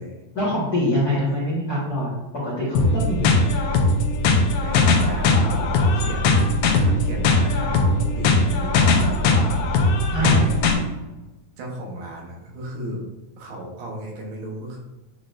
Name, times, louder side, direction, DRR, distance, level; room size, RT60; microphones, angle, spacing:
voice 1, 0.3-3.4 10.1-10.4, equal, 60° left, -7 dB, 1.0 m, -24 dB
sound 1, 2.7-10.7, left 3 dB, 80° left, 1.7 m, -19 dB
voice 2, 4.6-6.4 6.8-9.6 10.2-10.6 11.6-13.0 13.4-14.8, right 1 dB, 70° right, 0 dB, 2.7 m, -35 dB
10.0 x 4.1 x 2.6 m, 1.1 s
omnidirectional pair, 4.3 m